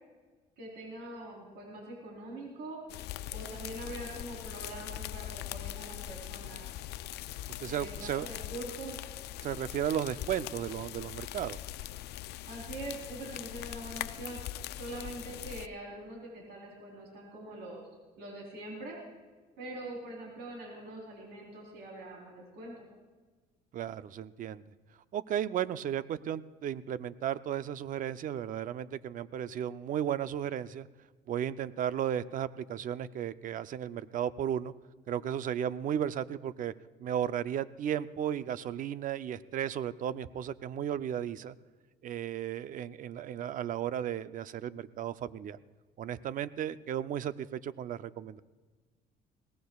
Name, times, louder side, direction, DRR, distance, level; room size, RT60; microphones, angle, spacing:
voice 1, 0.6-2.8 3.3-6.7 7.6-9.0 12.5-14.4 14.8-17.8 18.2-19.0 19.6-22.9, right 2 dB, 80° right, -2 dB, 3.8 m, -43 dB
sound 1, 2.9-15.7, left 14 dB, 75° left, 0.4 m, -41 dB
voice 2, 7.6-8.3 9.4-11.6 23.7-24.6 25.1-30.9 31.3-34.7 35.1-36.7 37.0-41.5 42.0-45.6 46.0-48.4, right 10 dB, 50° right, 14 dB, 0.5 m, -34 dB
21.5 x 18.0 x 2.4 m, 1.4 s
cardioid pair, 110°, 17 cm